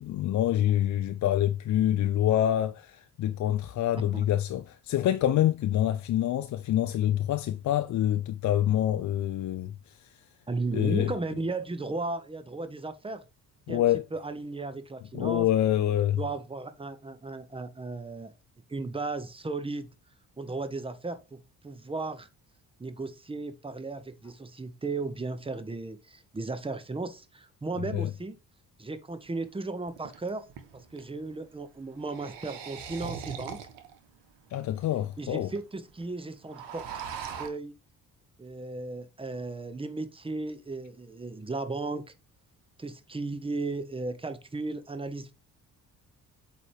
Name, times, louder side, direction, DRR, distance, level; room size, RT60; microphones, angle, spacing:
voice 1, 0.0-10.1 10.7-11.1 13.7-14.0 15.1-16.2 27.9-28.1 34.5-35.5, left 12 dB, 40° left, 0.5 m, -26 dB
voice 2, 10.5-13.2 13.7-13.8 14.1-15.5 16.2-18.3 18.7-19.9 20.4-22.3 22.8-28.4 28.8-30.4 30.7-33.6 35.2-37.7 38.4-42.1 42.8-45.3, right 3 dB, 10° right, 1.0 m, -35 dB
sound 1, 29.2-29.3 29.9-31.1 31.9-34.0 34.5-34.6 34.8-34.9 35.1-35.6 35.9-36.0 36.3-37.5, right 7 dB, 60° right, 1.2 m, -40 dB
8.2 x 3.1 x 4.8 m
figure-of-eight pair, 45°, 48 cm